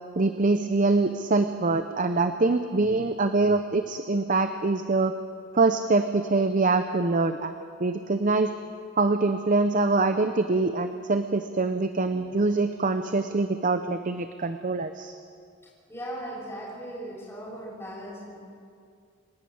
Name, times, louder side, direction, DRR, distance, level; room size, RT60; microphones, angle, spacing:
voice 1, 0.2-5.1 5.5-7.5 7.8-8.5 9.0-15.1, right 3 dB, 40° right, 9 dB, 0.7 m, -24 dB
voice 2, 15.9-18.4, right 1 dB, 15° left, -5 dB, 6.3 m, -38 dB
28.0 x 11.5 x 8.8 m, 2.3 s
head